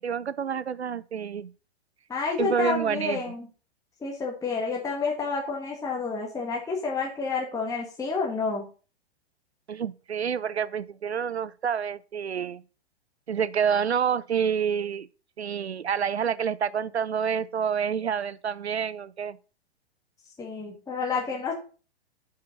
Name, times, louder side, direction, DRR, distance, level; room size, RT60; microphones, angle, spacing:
voice 1, 0.0-1.5 2.4-3.3 9.7-12.6 13.3-15.1 15.4-19.4, right 7 dB, 85° right, 0.7 m, -28 dB
voice 2, 2.1-3.5 4.0-8.7 20.4-21.5, left 4 dB, 10° left, 1.8 m, -29 dB
7.5 x 5.9 x 5.4 m
figure-of-eight pair, 110°, 32 cm